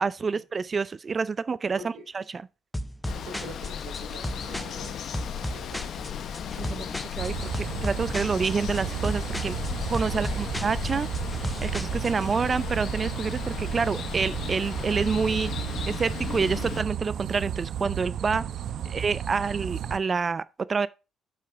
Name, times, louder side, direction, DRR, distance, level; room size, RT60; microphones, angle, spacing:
voice 1, 0.0-1.8 2.1-2.4 6.6-9.6 9.9-11.1 11.4-15.5 15.9-18.5 18.9-20.9, right 5 dB, 35° right, 0.4 m, -28 dB
voice 2, 1.8-2.1 3.1-5.0 5.4-6.4 10.1-10.6 18.8-18.9, right 3 dB, 90° right, 3.0 m, -45 dB
sound 1, 2.7-12.3, equal, 10° left, 0.6 m, -35 dB
Water, 3.0-16.8, left 8 dB, 65° left, 0.8 m, -36 dB
sound 2, 7.2-20.0, right 9 dB, 70° right, 0.7 m, -33 dB
7.6 x 5.7 x 4.5 m
cardioid pair, 90°, 0 cm